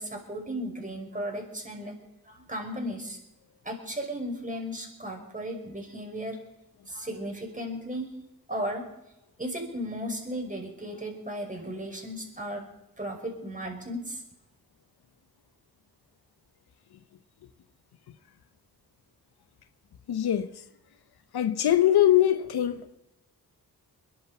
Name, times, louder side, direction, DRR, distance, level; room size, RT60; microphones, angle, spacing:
voice 1, 0.0-3.2 3.6-6.4 6.9-8.2 8.5-8.9 9.4-12.7 13.0-14.2, equal, 20° right, 5.6 m, -35 dB
voice 2, 20.1-20.5 21.3-23.0, left 12 dB, 90° left, 0.9 m, -22 dB
21.5 x 11.5 x 5.5 m
cardioid pair, 50°, 37 cm